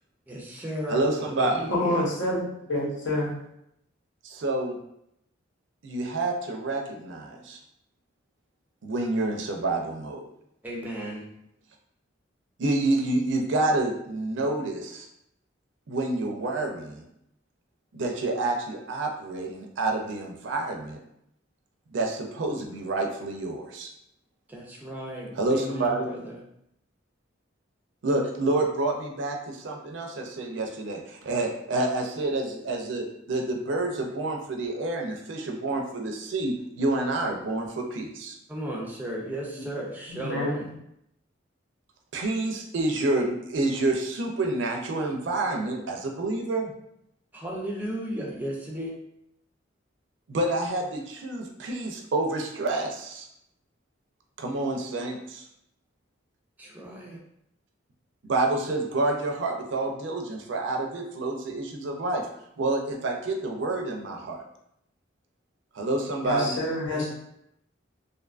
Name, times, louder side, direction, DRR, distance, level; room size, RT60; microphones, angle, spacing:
voice 1, 0.3-2.0 10.6-11.3 24.5-26.4 38.5-40.7 47.3-49.0 56.6-57.2 66.9-67.1, right 1 dB, 10° right, -2 dB, 0.4 m, -35 dB
voice 2, 0.9-1.6 4.2-4.8 5.8-7.6 8.8-10.2 12.6-15.1 15.9-17.0 17.9-21.0 21.9-23.9 25.4-26.1 28.0-38.4 42.1-46.7 50.3-53.3 54.4-55.4 58.2-62.3 62.6-64.4 65.7-66.6, right 2 dB, 65° right, 2 dB, 0.4 m, -28 dB
voice 3, 1.7-2.4 2.7-3.3 40.1-40.6 66.2-67.1, left 1 dB, 70° left, -5 dB, 0.9 m, -27 dB
2.5 x 2.3 x 2.4 m, 0.77 s
head